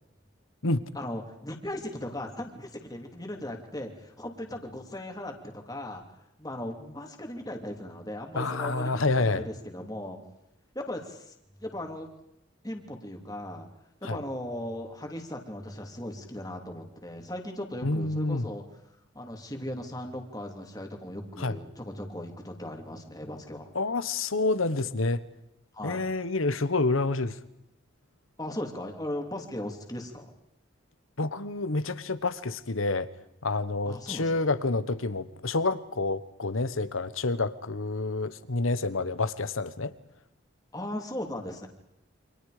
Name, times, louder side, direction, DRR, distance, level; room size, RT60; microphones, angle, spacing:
voice 1, 0.9-6.0 6.4-10.2 10.7-11.3 11.6-12.1 12.6-13.7 14.0-18.6 19.1-23.7 25.7-26.0 28.4-30.3 33.9-34.5 40.7-41.7, left 1 dB, 20° left, 2 dB, 2.9 m, -37 dB
voice 2, 8.3-9.5 14.0-14.2 17.8-18.5 21.4-21.6 23.7-25.2 25.8-27.4 31.2-33.1 33.4-39.9, left 3 dB, 85° left, 14 dB, 1.3 m, -28 dB
29.0 x 26.5 x 5.1 m, 0.81 s
head